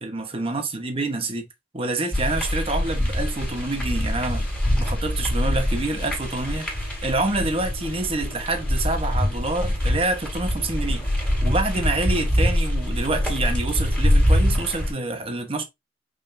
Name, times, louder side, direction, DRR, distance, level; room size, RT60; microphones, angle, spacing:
voice 1, 0.0-1.5 1.7-4.5 4.8-6.7 7.0-11.0 11.4-15.6, right 2 dB, 30° right, 1.1 m, -27 dB
sound 1, 2.1-14.9, equal, 5° left, 2.5 m, -24 dB
5.4 x 3.8 x 2.6 m
head